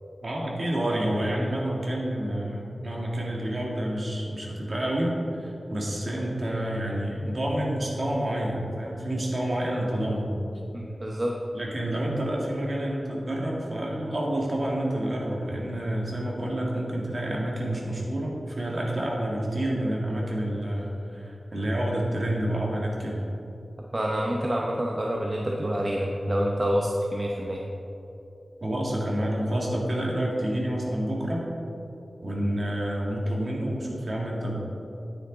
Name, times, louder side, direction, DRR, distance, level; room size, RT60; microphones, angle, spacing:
voice 1, 0.2-10.3 11.5-23.2 28.6-31.5 32.2-34.6, right 1 dB, 50° right, -3 dB, 2.0 m, -28 dB
voice 2, 10.7-11.3 23.9-27.6, equal, 35° right, -1 dB, 0.8 m, -27 dB
9.4 x 9.3 x 3.9 m, 2.9 s
wide cardioid pair, 70°, 0 cm